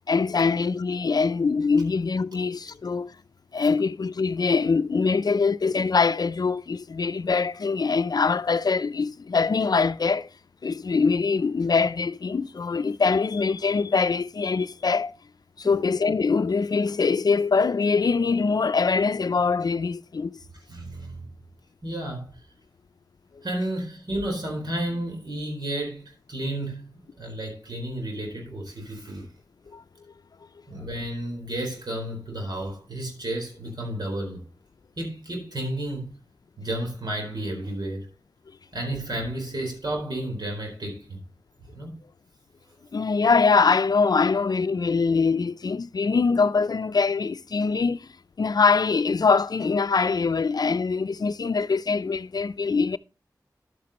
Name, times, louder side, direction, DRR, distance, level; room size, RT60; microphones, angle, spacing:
voice 1, 0.1-3.1 3.5-10.3 10.6-15.1 15.6-20.4 29.7-29.8 42.9-48.1 48.4-53.0, left 4 dB, 65° left, 0.4 m, -23 dB
voice 2, 20.7-21.3 21.8-22.4 23.4-26.0 26.3-26.9 27.2-29.3 30.7-34.4 35.0-36.1 36.6-38.1 38.7-41.2 41.7-41.9, right 1 dB, 75° right, 4.1 m, -32 dB
11.0 x 8.4 x 3.0 m
cardioid pair, 45°, 7 cm